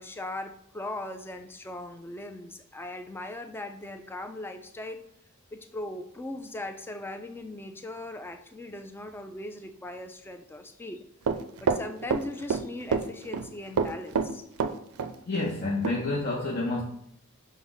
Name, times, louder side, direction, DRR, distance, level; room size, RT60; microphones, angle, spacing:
voice 1, 0.0-5.0 5.5-11.0 11.6-14.5, left 1 dB, 10° left, 7 dB, 0.3 m, -39 dB
Run, 11.3-12.6 12.9-13.5 13.8-15.1 15.4-15.5 15.8-16.0, right 5 dB, 85° right, 0.4 m, -27 dB
voice 2, 15.3-16.8, left 2 dB, 45° left, -4 dB, 0.6 m, -29 dB
5.8 x 2.1 x 3.9 m, 0.73 s
head